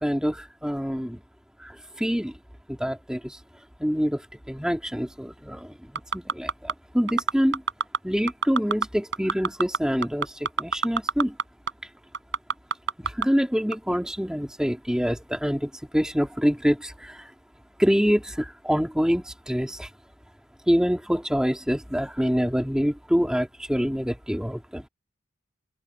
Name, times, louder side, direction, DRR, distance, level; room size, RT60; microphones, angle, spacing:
voice 1, 0.0-1.2 1.6-2.3 2.7-3.4 3.8-4.2 4.5-5.7 6.1-7.6 8.0-11.3 13.0-17.3 17.8-19.9 20.7-24.8, equal, 5° right, 2.4 m, -26 dB
sound 1, 6.0-6.7 7.1-8.0 8.3-8.9 9.1-11.4 11.7-11.8 12.1-13.3 13.7-13.8, right 4 dB, 80° right, 5.8 m, -24 dB
head